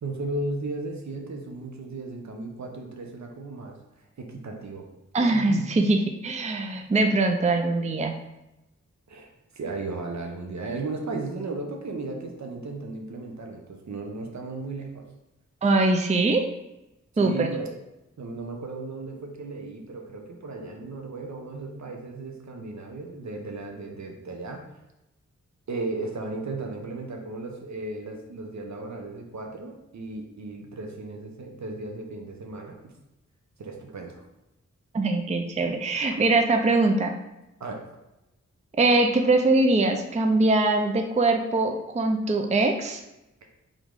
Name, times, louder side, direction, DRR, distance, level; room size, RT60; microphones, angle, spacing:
voice 1, 0.0-3.8 4.2-4.9 5.3-5.7 9.1-15.1 17.2-17.8 18.2-24.7 25.7-32.9 33.6-34.2 37.6-37.9, right 3 dB, 65° right, 2 dB, 0.8 m, -35 dB
voice 2, 5.1-8.1 15.6-16.4 17.2-17.5 34.9-37.1 38.8-43.0, right 2 dB, 25° right, 4 dB, 0.4 m, -22 dB
3.6 x 3.1 x 3.7 m, 0.95 s
cardioid pair, 45°, 30 cm